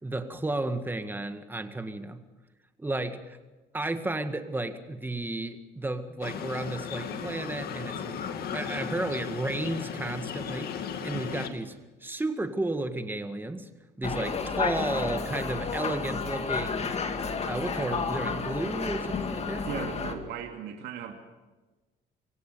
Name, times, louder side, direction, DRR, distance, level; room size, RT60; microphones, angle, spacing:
voice 1, 0.0-2.2 2.8-3.4 3.7-8.2 8.5-10.7 11.0-11.8 12.0-13.7 14.0-16.9 17.4-19.7, right 2 dB, 10° right, 8 dB, 1.8 m, -33 dB
sound 1, 6.2-11.5, left 7 dB, 65° left, 2.3 m, -36 dB
sound 2, 14.0-20.1, left 5 dB, 40° left, 2.2 m, -31 dB
voice 2, 19.6-21.1, right 7 dB, 75° right, 3 dB, 2.5 m, -37 dB
24.5 x 16.5 x 6.9 m, 1.2 s
cardioid pair, 110°, 17 cm